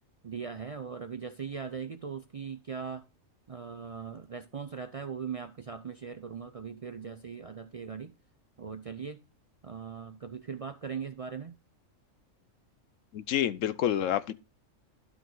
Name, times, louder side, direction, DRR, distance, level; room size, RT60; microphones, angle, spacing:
voice 1, 0.2-3.0 3.5-8.1 8.6-9.2 9.6-11.6, right 6 dB, 60° right, 0.3 m, -39 dB
voice 2, 13.1-14.3, left 11 dB, 75° left, 1.0 m, -28 dB
11.5 x 4.7 x 3.9 m
omnidirectional pair, 1.4 m